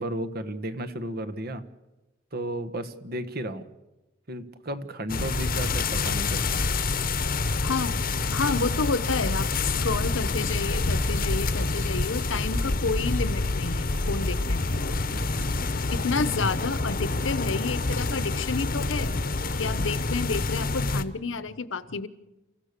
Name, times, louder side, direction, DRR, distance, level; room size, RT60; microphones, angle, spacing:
voice 1, 0.0-1.6 2.3-3.6 4.3-6.6 15.1-15.5, right 1 dB, 50° right, 12 dB, 1.4 m, -33 dB
sound 1, 5.1-21.0, left 3 dB, 45° left, 1.0 m, -27 dB
voice 2, 7.6-14.8 15.9-19.1 19.5-22.1, left 4 dB, 75° left, 14 dB, 1.1 m, -30 dB
29.5 x 15.5 x 6.8 m, 1.0 s
head